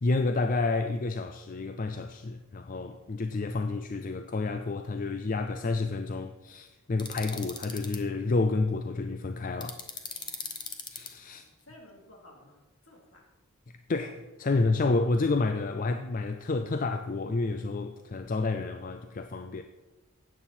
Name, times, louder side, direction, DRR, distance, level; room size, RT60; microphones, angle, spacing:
voice 1, 0.0-9.8 10.9-11.4 13.9-19.6, left 3 dB, 40° left, 0.5 m, -29 dB
sound 1, 7.0-8.0 9.6-11.1, left 5 dB, 20° left, 0.9 m, -38 dB
voice 2, 10.1-10.7 11.2-13.3, left 1 dB, 65° left, 2.9 m, -56 dB
13.0 x 9.0 x 4.4 m
head